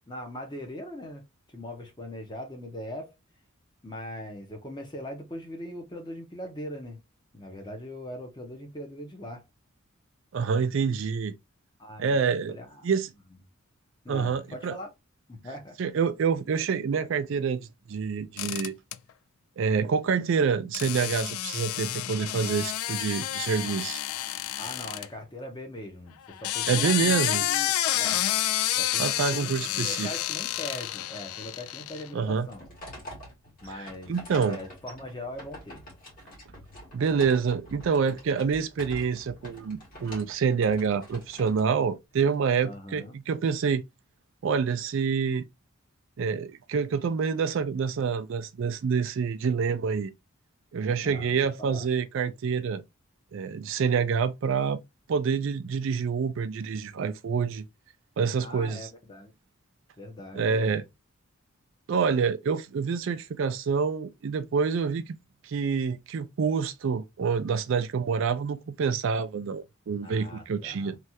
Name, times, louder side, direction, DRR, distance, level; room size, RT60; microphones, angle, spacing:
voice 1, 0.1-3.1 3.8-7.0 7.3-9.4 11.8-12.9 14.0-14.9 15.3-15.8 24.6-28.2 28.7-32.7 33.6-35.8 42.6-43.2 51.0-51.9 58.4-59.3 60.0-60.8 70.0-71.0, left 1 dB, 20° left, 0.8 m, -41 dB
voice 2, 10.3-11.4 12.0-12.6 12.8-13.1 14.1-14.8 15.8-18.7 19.6-24.0 26.7-27.4 29.0-30.1 32.1-32.5 33.7-34.6 36.9-43.8 44.4-45.5 46.2-50.1 50.7-52.8 53.3-54.8 55.1-57.6 58.2-58.9 60.3-60.8 61.9-65.2 65.4-70.9, right 6 dB, 60° right, 0.3 m, -27 dB
sound 1, 18.4-19.0 20.7-25.1 26.2-32.1, left 13 dB, 80° left, 0.3 m, -30 dB
sound 2, 32.2-42.4, equal, 40° left, 1.7 m, -46 dB
3.2 x 2.4 x 2.7 m
head